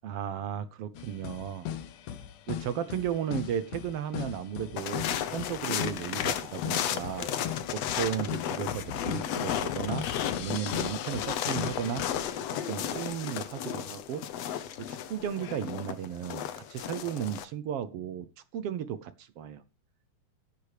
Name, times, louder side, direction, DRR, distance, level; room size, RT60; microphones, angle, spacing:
voice 1, 0.0-1.7 2.5-12.2 12.5-18.3 18.5-19.6, right 9 dB, 70° right, 14 dB, 1.4 m, -35 dB
sound 1, 0.9-12.2, left 10 dB, 90° left, 2.6 m, -39 dB
sound 2, 4.8-17.4, left 10 dB, 65° left, 1.9 m, -34 dB
15.0 x 10.5 x 3.3 m, 0.30 s
omnidirectional pair, 3.5 m